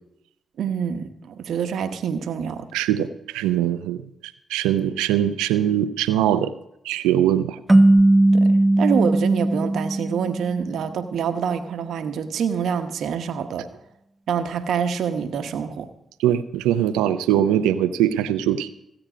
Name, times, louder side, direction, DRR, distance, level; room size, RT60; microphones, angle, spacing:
voice 1, 0.6-2.7 8.3-13.7 14.3-15.9, right 7 dB, 75° right, 9 dB, 1.0 m, -26 dB
voice 2, 2.7-4.0 4.5-6.5 6.8-7.6 16.2-18.7, right 11 dB, 90° right, 13 dB, 0.5 m, -21 dB
sound 1, 7.7-10.9, right 1 dB, 20° right, 0.5 m, -18 dB
16.0 x 8.8 x 5.0 m, 0.83 s
supercardioid pair, 45°, 0 cm